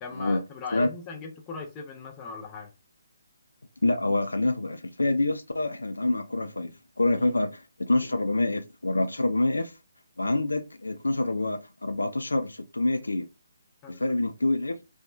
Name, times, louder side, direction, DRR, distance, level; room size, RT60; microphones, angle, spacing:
voice 1, 0.0-2.7 7.2-7.3 13.8-14.0, left 4 dB, 20° left, 0.6 m, -39 dB
voice 2, 3.8-9.7 10.2-13.3 13.9-14.8, left 2 dB, 70° left, 0.5 m, -26 dB
2.9 x 2.2 x 2.3 m
figure-of-eight pair, 140°, 0 cm